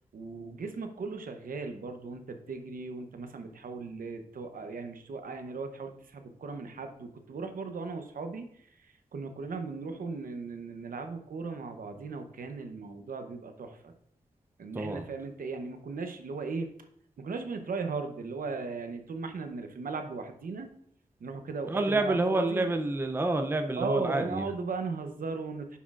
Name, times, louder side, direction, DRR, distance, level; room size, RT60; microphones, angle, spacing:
voice 1, 0.1-13.9 14.6-16.7 17.2-20.7 21.2-22.7 23.7-25.8, right 4 dB, 75° right, 6 dB, 0.8 m, -37 dB
voice 2, 21.7-24.5, right 2 dB, 15° right, 5 dB, 0.5 m, -28 dB
9.3 x 6.2 x 2.4 m, 0.69 s
wide cardioid pair, 170°, 15 cm